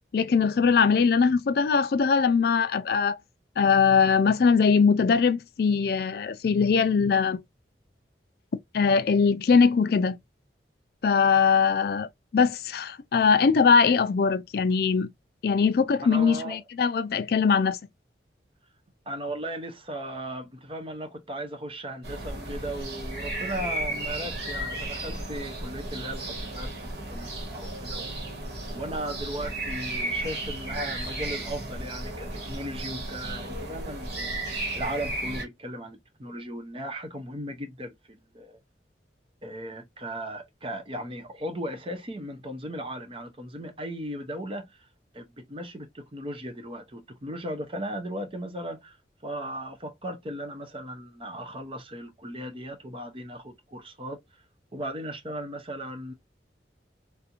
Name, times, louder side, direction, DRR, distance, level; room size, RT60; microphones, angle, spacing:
voice 1, 0.1-3.2 3.6-7.4 8.7-10.2 11.0-12.1 12.3-15.1 15.4-17.8, left 5 dB, 60° left, 0.3 m, -21 dB
voice 2, 16.0-16.6 19.1-28.1 28.7-34.4 34.7-38.6 39.4-44.9 45.1-49.0 49.2-54.2 54.7-56.1, right 1 dB, 30° right, 0.6 m, -37 dB
sound 1, 22.0-35.4, right 1 dB, 70° right, 1.4 m, -34 dB
3.3 x 2.5 x 2.8 m
head